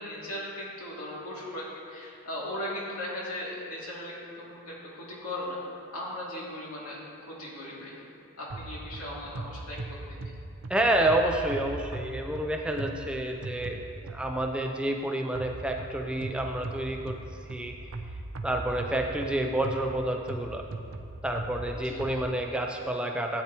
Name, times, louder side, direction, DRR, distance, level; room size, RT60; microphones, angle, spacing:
voice 1, 0.0-5.6 5.9-8.0 8.4-10.2 21.7-22.2, left 1 dB, 90° left, -5 dB, 2.5 m, -38 dB
sound 1, 8.5-14.6 15.3-22.2, right 2 dB, 70° right, 0.6 m, -39 dB
voice 2, 10.7-13.8 14.1-17.2 17.5-17.7 18.4-20.6 21.2-23.4, right 1 dB, 5° right, 2 dB, 0.4 m, -29 dB
13.0 x 8.9 x 2.9 m, 2.5 s
head